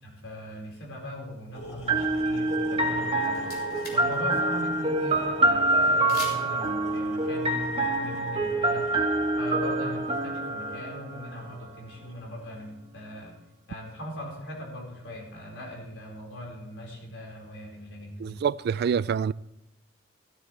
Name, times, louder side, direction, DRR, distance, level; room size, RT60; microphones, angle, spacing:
voice 1, 0.0-3.5 3.9-8.9 9.4-13.4 13.7-18.5, left 1 dB, 80° left, 4.9 m, -39 dB
sound 1, 1.5-12.5, right 1 dB, 35° left, 2.3 m, -45 dB
sound 2, 1.9-11.7, right 2 dB, 30° right, 1.3 m, -26 dB
sound 3, 3.1-4.2 4.4-4.5 6.1-6.7, left 2 dB, 55° left, 3.7 m, -40 dB
voice 2, 18.2-19.3, right 7 dB, 60° right, 0.3 m, -26 dB
14.0 x 12.5 x 3.4 m
head